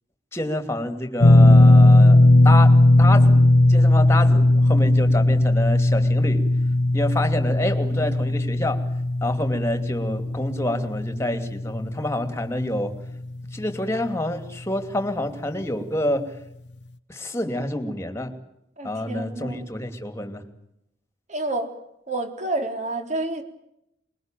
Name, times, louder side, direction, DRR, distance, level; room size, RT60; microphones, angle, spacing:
voice 1, 0.3-2.2 2.4-3.4 3.7-6.5 6.9-8.8 9.2-12.9 13.5-16.3 17.1-18.3 18.8-20.4, left 1 dB, 15° left, 7 dB, 2.7 m, -27 dB
sound 1, 1.2-13.4 13.7-13.9 15.6-15.7, left 1 dB, 65° left, 0.9 m, -17 dB
voice 2, 18.8-19.6 21.3-21.7 22.1-23.4, right 2 dB, 40° right, 6 dB, 3.7 m, -29 dB
24.0 x 22.0 x 9.1 m, 0.80 s
head